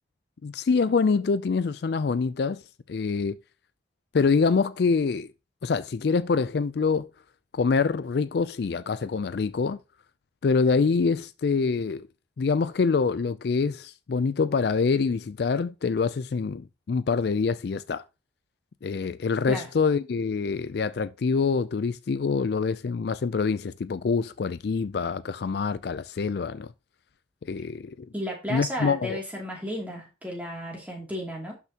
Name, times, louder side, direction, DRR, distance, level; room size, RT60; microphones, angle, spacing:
voice 1, 0.4-2.6 2.9-3.4 4.1-5.3 5.6-7.1 7.5-9.8 10.4-12.1 12.4-18.0 18.8-26.7 27.4-28.1 28.5-29.2, left 5 dB, 55° left, 0.4 m, -25 dB
voice 2, 28.1-31.5, equal, 10° right, 2.6 m, -33 dB
12.0 x 5.8 x 2.9 m
head